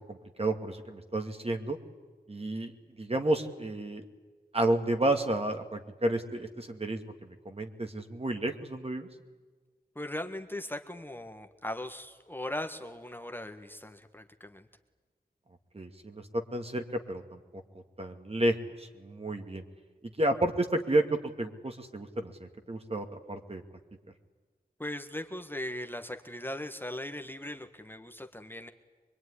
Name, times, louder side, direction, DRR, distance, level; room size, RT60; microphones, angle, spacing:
voice 1, 0.1-1.8 2.3-4.0 4.5-9.1 15.7-17.4 18.0-19.6 20.0-21.0 21.4-23.6, right 1 dB, 35° right, 5 dB, 2.5 m, -31 dB
voice 2, 9.9-14.7 24.8-28.7, left 1 dB, 10° left, 5 dB, 1.6 m, -39 dB
24.0 x 22.5 x 10.0 m, 1.4 s
cardioid pair, 55°, 17 cm